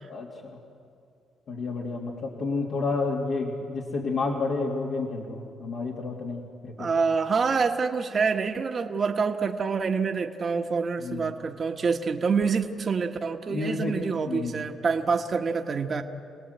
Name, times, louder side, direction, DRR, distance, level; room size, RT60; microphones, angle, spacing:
voice 1, 0.1-0.6 1.5-6.9 11.0-11.3 13.5-14.6, left 3 dB, 70° left, -3 dB, 2.6 m, -30 dB
voice 2, 6.8-16.0, right 5 dB, 40° right, 4 dB, 1.2 m, -26 dB
26.5 x 18.5 x 8.1 m, 2.4 s
cardioid pair, 90°, 0 cm